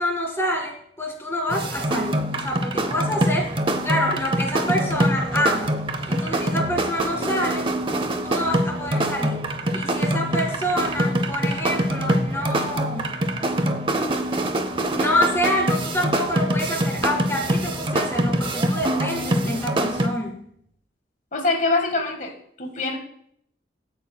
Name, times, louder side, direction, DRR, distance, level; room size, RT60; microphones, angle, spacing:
voice 1, 0.0-3.5 3.8-7.7 8.2-13.3 15.0-20.4, left 1 dB, 15° left, 1 dB, 2.1 m, -27 dB
sound 1, 1.5-20.1, right 1 dB, 30° right, 0.7 m, -24 dB
voice 2, 21.3-22.3 22.6-23.0, left 3 dB, 45° left, 5 dB, 1.6 m, -23 dB
16.0 x 8.9 x 2.3 m, 0.66 s
head